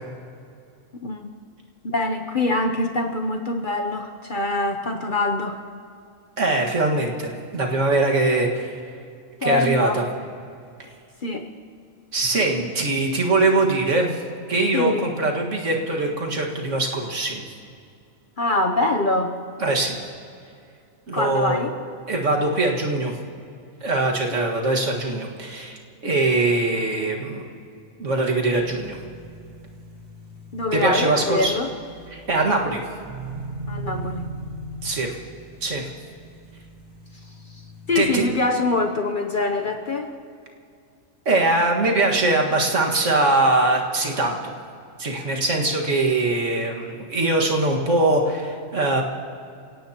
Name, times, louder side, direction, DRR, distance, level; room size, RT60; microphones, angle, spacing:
voice 1, 0.9-1.3 1.8-5.6 9.4-10.0 11.2-11.4 14.7-15.1 18.4-19.3 21.1-21.7 30.5-31.7 33.7-34.3 37.9-40.1, left 2 dB, 45° left, 4 dB, 0.8 m, -24 dB
voice 2, 6.4-8.7 9.4-10.0 12.1-14.2 14.5-17.4 19.6-20.0 21.1-21.6 22.1-23.1 23.8-27.4 28.0-29.0 30.7-31.5 32.1-32.8 34.8-35.2 35.6-35.9 38.0-38.3 41.3-44.5 45.0-49.0, right 2 dB, 60° right, 0 dB, 2.1 m, -22 dB
sound 1, 28.6-38.2, right 2 dB, 20° right, 4.5 m, -39 dB
28.0 x 17.0 x 2.9 m, 2.4 s
omnidirectional pair, 1.4 m